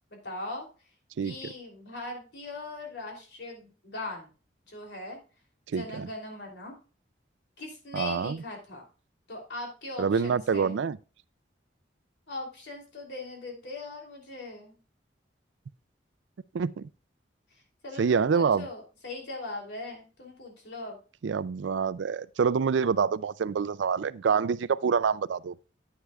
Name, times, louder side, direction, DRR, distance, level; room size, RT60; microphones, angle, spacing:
voice 1, 0.1-0.7 1.2-4.3 4.7-5.2 5.7-6.8 7.6-8.9 9.3-10.8 12.3-14.8 17.5-21.0, left 2 dB, 65° left, 3.0 m, -40 dB
voice 2, 5.7-6.1 7.9-8.4 10.0-11.0 16.5-16.9 18.0-18.7 21.2-25.5, right 6 dB, 80° right, 0.4 m, -26 dB
9.7 x 9.6 x 2.3 m
head